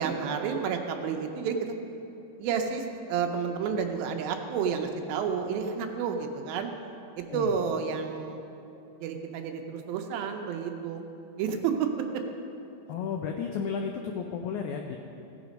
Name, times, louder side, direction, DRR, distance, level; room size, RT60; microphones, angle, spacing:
voice 1, 0.0-1.7 2.4-6.7 7.2-8.4 9.0-11.1 11.4-12.2, right 6 dB, 85° right, 4 dB, 2.6 m, -30 dB
voice 2, 12.9-15.0, left 6 dB, 85° left, 3 dB, 1.7 m, -33 dB
16.0 x 6.2 x 5.2 m, 2.8 s
omnidirectional pair, 4.2 m